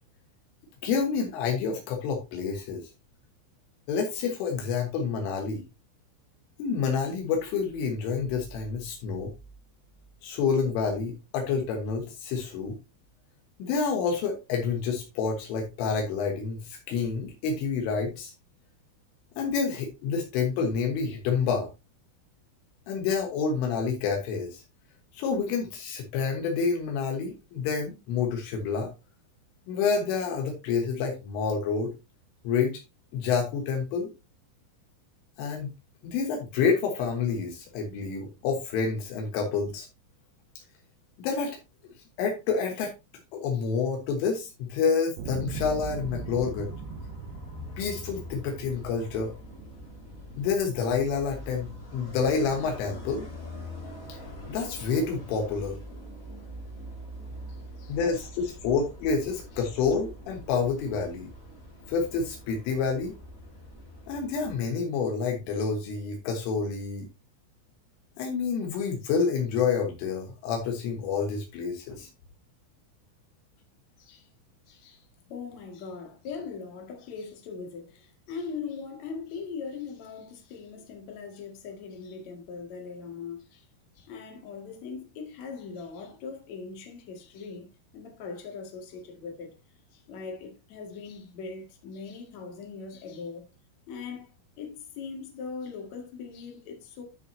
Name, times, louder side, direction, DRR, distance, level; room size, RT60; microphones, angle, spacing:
voice 1, 0.8-2.9 3.9-5.6 6.6-9.3 10.2-12.8 13.6-18.3 19.4-21.7 22.9-24.6 25.1-28.9 29.7-31.9 32.5-32.8 33.1-34.1 35.4-35.7 36.0-39.9 41.2-41.6 42.2-42.9 43.3-46.8 47.8-49.3 50.4-53.3 54.1-54.2 54.5-55.8 57.9-61.3 61.9-63.2 64.1-67.1 68.2-72.1, left 5 dB, 80° left, 3.9 m, -28 dB
sound 1, 45.2-50.4 51.1-51.2, right 5 dB, 80° right, 2.2 m, -41 dB
sound 2, 45.5-64.6, left 1 dB, 30° left, 1.6 m, -43 dB
voice 2, 57.5-58.5 74.0-74.3 74.7-83.7 83.9-87.7 87.9-89.6 89.9-93.5 93.9-94.3 94.6-97.0, left 5 dB, 45° left, 2.6 m, -40 dB
12.5 x 5.7 x 2.7 m
omnidirectional pair, 5.6 m